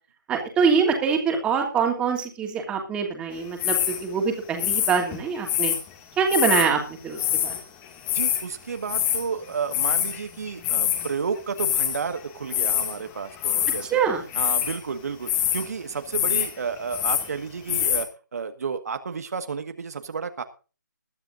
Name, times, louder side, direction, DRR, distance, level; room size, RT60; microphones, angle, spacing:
voice 1, 0.3-5.7 6.2-7.5 13.9-14.2, right 6 dB, 10° right, 3 dB, 2.8 m, -24 dB
sound 1, 3.6-4.0 4.6-5.8 6.3-6.7 7.1-7.6 7.9-8.4 8.9-9.2 9.7-10.2 10.5-11.1 11.6-12.0 12.5-13.0 13.4-13.9 14.3-14.8 15.3-15.7 16.1-16.5 16.8-17.3 17.7-18.0, left 11 dB, 15° left, 2.1 m, -24 dB
voice 2, 8.1-14.0 14.3-20.4, right 5 dB, 55° right, 8 dB, 1.6 m, -31 dB
20.5 x 11.5 x 2.6 m, 0.34 s
figure-of-eight pair, 155°, 10 cm